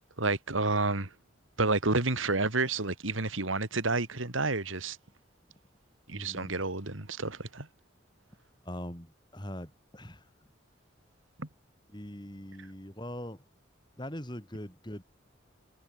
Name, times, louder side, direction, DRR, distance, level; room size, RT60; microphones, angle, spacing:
voice 1, 0.2-1.1 1.6-5.0 6.1-7.7 11.4-11.5, right 3 dB, 90° right, 2.9 m, -30 dB
voice 2, 6.1-6.6 8.6-10.2 11.9-13.4 14.0-15.0, equal, 20° left, 4.0 m, -42 dB
head